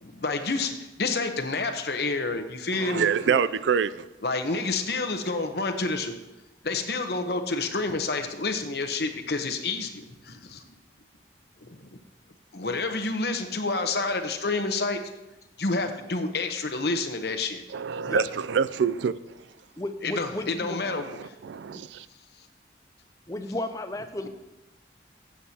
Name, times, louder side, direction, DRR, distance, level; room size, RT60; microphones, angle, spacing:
voice 1, 0.0-3.1 4.2-6.1 6.6-10.6 11.7-11.9 12.5-15.0 15.6-17.6 20.0-21.1, left 3 dB, 60° left, 0.9 m, -29 dB
voice 2, 2.7-4.1 17.7-19.1 20.9-22.1, right 7 dB, 75° right, 0.3 m, -26 dB
voice 3, 19.8-20.8 23.3-24.3, left 1 dB, 20° left, 0.5 m, -33 dB
15.5 x 7.4 x 2.8 m
head